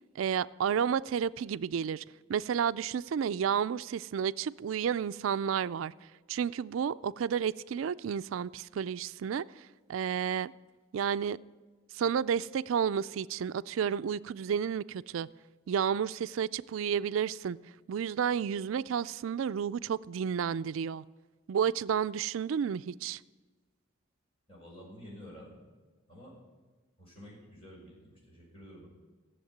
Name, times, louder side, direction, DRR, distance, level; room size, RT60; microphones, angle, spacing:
voice 1, 0.2-2.0 2.3-5.9 6.3-10.5 10.9-11.4 11.9-15.3 15.7-17.6 17.9-21.0 21.5-23.2, right 7 dB, 85° right, 0.4 m, -31 dB
voice 2, 24.5-25.6 26.1-26.3 27.0-28.9, equal, 30° left, 5.6 m, -50 dB
15.0 x 7.3 x 9.3 m
head